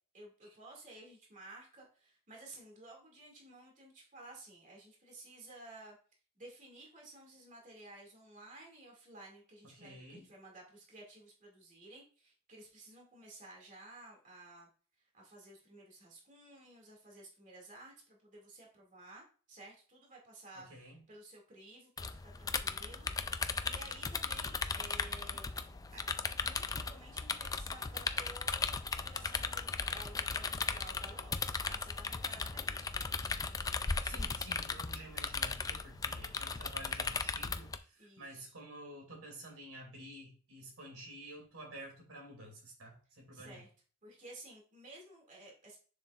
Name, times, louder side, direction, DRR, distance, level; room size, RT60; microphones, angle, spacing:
voice 1, 0.1-6.0 6.4-14.7 15.1-23.1 23.6-25.5 25.9-26.0 26.4-33.1 38.0-38.5 43.3-43.7 44.0-45.8, right 2 dB, 40° right, -1 dB, 2.3 m, -54 dB
voice 2, 9.7-10.3 20.6-21.0 33.8-43.6, right 1 dB, 85° right, 1 dB, 2.7 m, -50 dB
sound 1, 22.0-37.8, left 4 dB, 15° left, 0.4 m, -37 dB
7.0 x 6.4 x 2.5 m, 0.39 s
head